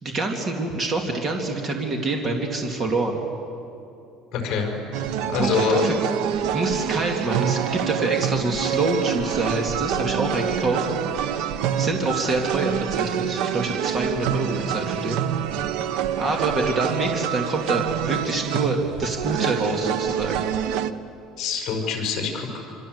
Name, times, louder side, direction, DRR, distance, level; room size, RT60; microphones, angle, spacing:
voice 1, 0.0-3.2 5.4-5.9 6.5-10.9 11.8-15.2 16.2-20.5, right 2 dB, 25° right, 2 dB, 2.3 m, -26 dB
voice 2, 4.3-4.7 5.3-5.9 21.4-22.6, left 5 dB, 40° left, 0 dB, 5.9 m, -25 dB
sound 1, 4.9-20.9, right 9 dB, 70° right, 1.0 m, -26 dB
27.0 x 26.5 x 8.0 m, 2.8 s
cardioid pair, 170°, 0 cm